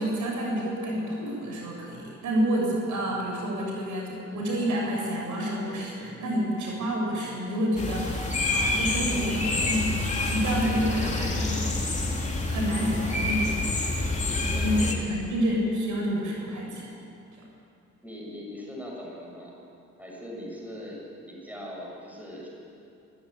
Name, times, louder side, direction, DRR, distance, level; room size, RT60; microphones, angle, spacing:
voice 1, 0.0-10.0 10.3-11.9 12.2-13.6 14.3-14.7 15.1-16.9, equal, 75° right, -2 dB, 7.0 m, -29 dB
sound 1, 7.8-14.9, left 2 dB, 25° left, 3.4 m, -27 dB
voice 2, 10.6-11.5 14.0-15.0 18.0-19.5 20.0-21.0 21.3-22.5, left 1 dB, 5° right, -3 dB, 7.0 m, -40 dB
22.5 x 14.0 x 9.9 m, 2.6 s
cardioid pair, 90°, 30 cm